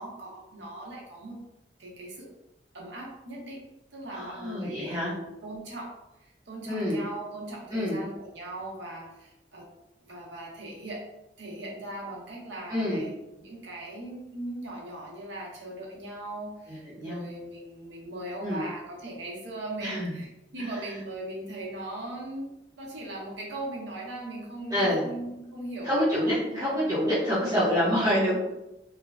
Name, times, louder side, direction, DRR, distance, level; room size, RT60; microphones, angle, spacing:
voice 1, 0.0-1.4 1.8-2.3 2.7-9.7 10.0-11.1 11.4-27.0 27.4-28.1, right 1 dB, 70° right, -3 dB, 0.8 m, -39 dB
voice 2, 4.1-5.1 6.7-7.0 7.7-8.0 12.7-13.0 16.7-17.2 18.4-18.6 19.8-20.1 20.6-20.7 24.7-25.0 25.8-28.4, equal, 20° right, -10 dB, 0.7 m, -27 dB
3.1 x 2.1 x 2.4 m, 0.91 s
head